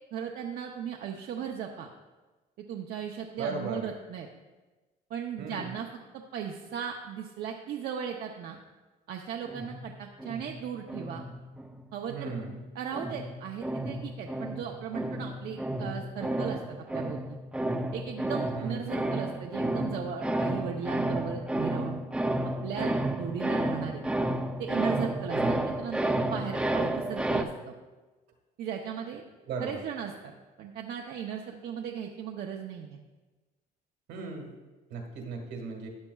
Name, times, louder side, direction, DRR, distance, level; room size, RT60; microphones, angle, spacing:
voice 1, 0.1-1.9 2.7-4.3 5.1-5.9 6.1-8.6 9.1-11.2 11.9-12.3 12.7-16.6 16.9-17.4 17.9-22.0 22.6-24.0 24.6-27.7 28.6-29.2 29.6-30.3 30.6-33.0, right 8 dB, 65° right, 2 dB, 0.7 m, -37 dB
voice 2, 3.4-3.9 5.4-5.7 12.1-12.6 18.6-18.9 25.3-25.7 29.5-29.8 34.1-34.5 34.9-35.9, right 4 dB, 85° right, 2 dB, 1.8 m, -36 dB
sound 1, 9.5-11.8 12.2-27.4, right 1 dB, 5° right, 0.5 m, -31 dB
13.0 x 8.8 x 2.3 m, 1.2 s
cardioid pair, 110°, 17 cm